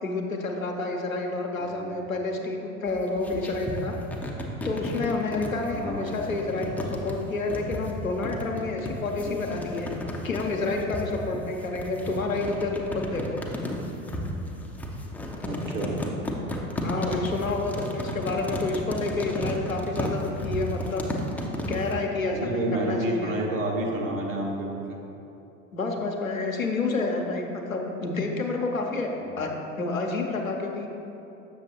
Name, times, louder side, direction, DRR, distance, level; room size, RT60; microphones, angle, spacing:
voice 1, 0.0-3.9 4.6-9.9 10.2-13.4 16.8-21.1 21.7-23.3 25.7-29.1 29.4-29.5 29.8-30.9, left 3 dB, 85° left, 1 dB, 0.7 m, -29 dB
sound 1, 2.9-22.0, equal, 5° left, 0.3 m, -33 dB
voice 2, 5.7-6.2 9.2-9.4 15.4-16.0 22.3-25.0 29.2-29.4, right 1 dB, 75° right, -1 dB, 1.0 m, -30 dB
6.7 x 6.6 x 2.8 m, 2.9 s
figure-of-eight pair, 70°, 39 cm